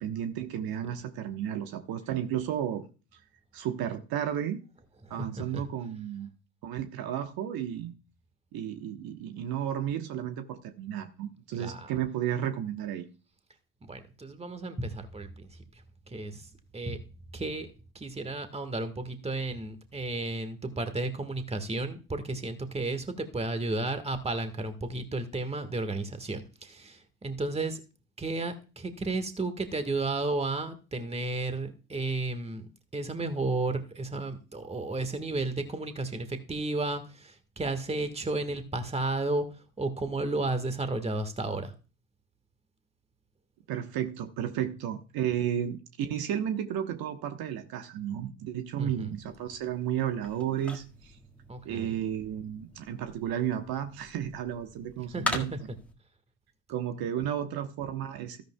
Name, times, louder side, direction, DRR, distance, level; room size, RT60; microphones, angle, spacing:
voice 1, 0.0-2.9 3.5-4.6 5.1-6.3 6.6-7.9 8.5-13.1 43.7-51.2 51.6-55.5 56.7-58.4, right 10 dB, 60° right, 1.2 m, -33 dB
voice 2, 5.0-5.6 11.5-11.9 13.8-17.0 17.3-27.8 28.2-41.7 48.8-49.1 51.5-52.0 55.1-55.8, right 2 dB, 15° right, 1.5 m, -33 dB
sound 1, 49.1-55.9, left 1 dB, 5° left, 1.8 m, -41 dB
13.0 x 10.5 x 2.3 m
hypercardioid pair, 75°, 41 cm